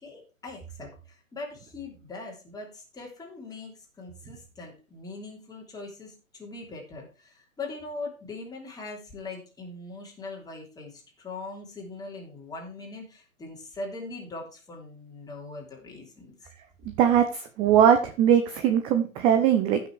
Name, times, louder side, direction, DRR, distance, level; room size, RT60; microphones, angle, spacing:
voice 1, 0.0-16.3, left 3 dB, 10° left, -1 dB, 3.2 m, -41 dB
voice 2, 17.0-19.8, right 9 dB, 15° right, 8 dB, 0.5 m, -21 dB
14.5 x 6.2 x 4.7 m, 0.33 s
figure-of-eight pair, 125°, 41 cm